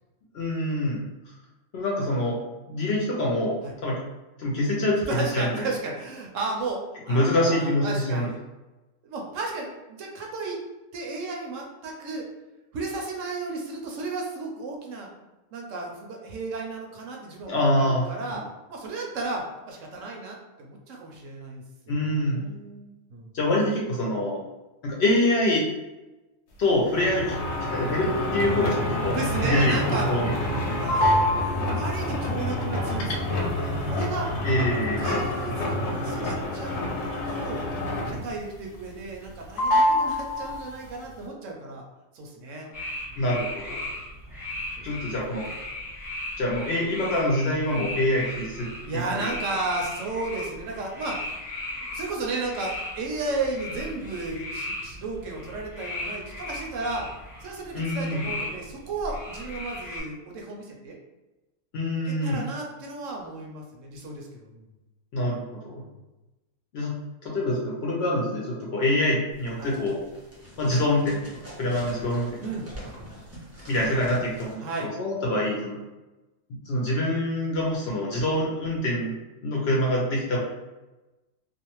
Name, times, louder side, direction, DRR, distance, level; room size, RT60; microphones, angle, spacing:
voice 1, 0.3-1.0 1.7-2.4 2.7-4.0 4.4-5.0 5.3-5.5 7.1-8.3 17.5-18.1 21.9-22.4 23.3-24.4 24.8-25.6 26.6-27.3 27.7-29.2 29.5-30.3 34.4-35.0 43.2-43.8 44.8-45.5 46.4-48.7 48.9-49.3 57.7-58.2 61.7-62.4 65.1-65.8 66.7-66.9 67.2-70.0 70.6-72.4 73.7-75.8 76.7-79.1 79.4-80.4, left 1 dB, 60° left, -3 dB, 0.7 m, -25 dB
voice 2, 5.0-8.4 9.0-10.6 10.9-12.3 12.7-15.1 15.5-18.4 18.7-23.3 27.0-27.1 29.1-30.1 30.7-31.1 31.3-34.3 35.0-36.8 37.3-37.6 38.1-41.8 42.1-42.8 43.1-43.2 45.0-45.1 48.8-51.2 51.7-57.1 57.4-61.0 62.1-64.6 65.7-65.9 69.6-69.8 72.4-72.7 74.6-74.9, right 3 dB, 75° right, 0 dB, 0.9 m, -34 dB
sound 1, 26.9-38.4 38.8-39.3 39.6-40.9, left 1 dB, 85° left, 1.0 m, -27 dB
sound 2, 42.7-60.0, left 1 dB, ahead, 0.8 m, -37 dB
sound 3, 69.3-74.5, right 1 dB, 20° right, 0.4 m, -43 dB
2.6 x 2.1 x 2.9 m, 1.1 s
omnidirectional pair, 1.4 m